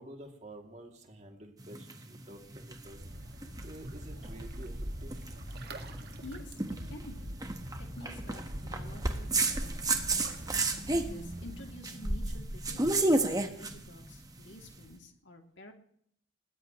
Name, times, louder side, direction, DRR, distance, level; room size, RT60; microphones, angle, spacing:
voice 1, 0.0-3.0 3.6-5.3, right 1 dB, 35° right, 2 dB, 2.6 m, -49 dB
sound 1, 1.6-14.8, right 2 dB, 20° right, 1.2 m, -33 dB
sound 2, 2.9-11.8, equal, 50° right, 1.9 m, -44 dB
voice 2, 5.9-7.3 7.8-10.0 10.9-15.7, left 2 dB, 60° left, 3 dB, 2.7 m, -50 dB
21.0 x 19.5 x 3.1 m, 0.66 s
head